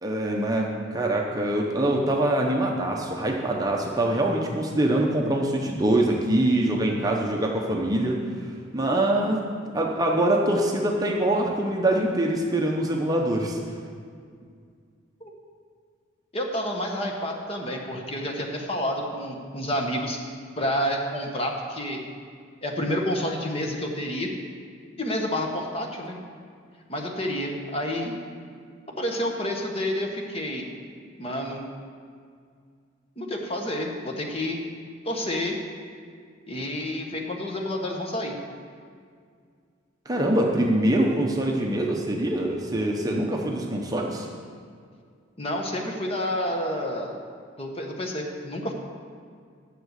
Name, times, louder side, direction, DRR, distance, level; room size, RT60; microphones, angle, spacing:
voice 1, 0.0-8.2 8.7-9.4 9.7-13.6 40.1-44.3, right 1 dB, 20° right, 0 dB, 0.7 m, -24 dB
voice 2, 16.3-20.2 20.6-22.0 22.6-24.3 25.0-26.2 26.9-28.1 29.0-30.7 31.2-31.6 33.2-34.6 35.0-35.6 36.5-38.3 45.4-47.1 47.6-48.7, left 1 dB, 30° left, 1 dB, 1.0 m, -29 dB
7.6 x 6.6 x 8.0 m, 2.1 s
head